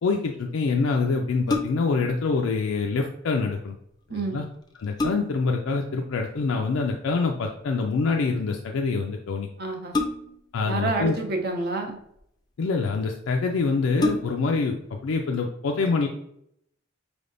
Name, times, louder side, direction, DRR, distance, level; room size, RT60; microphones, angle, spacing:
voice 1, 0.0-3.8 4.1-4.5 4.8-9.5 10.5-11.2 12.6-16.1, left 4 dB, 85° left, 2 dB, 0.4 m, -25 dB
sound 1, 1.3-2.0 4.1-4.2 4.6-5.5 7.1-7.5 9.9-10.5 11.5-12.2 12.9-13.0 13.4-13.5 13.9-14.6 15.1-15.2, left 2 dB, 20° left, 0.4 m, -29 dB
voice 2, 9.6-10.0 10.7-12.0, right 3 dB, 55° right, 2 dB, 0.7 m, -28 dB
4.7 x 3.4 x 2.5 m, 0.74 s
head